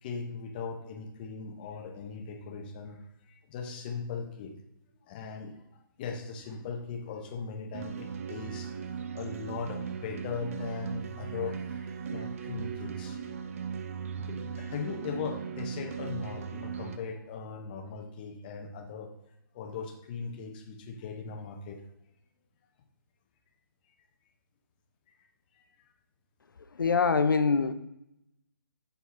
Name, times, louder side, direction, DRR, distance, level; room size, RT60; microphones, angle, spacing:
voice 1, 0.0-4.5 5.0-8.7 9.1-13.4 14.1-19.1 19.5-21.8 25.1-25.2 25.5-25.7, left 5 dB, 25° left, 4 dB, 0.7 m, -39 dB
sound 1, 7.7-17.0, right 7 dB, 40° right, 0.4 m, -38 dB
voice 2, 26.8-27.7, left 5 dB, 65° left, 11 dB, 0.6 m, -24 dB
7.8 x 4.6 x 3.0 m, 0.82 s
figure-of-eight pair, 140°, 12 cm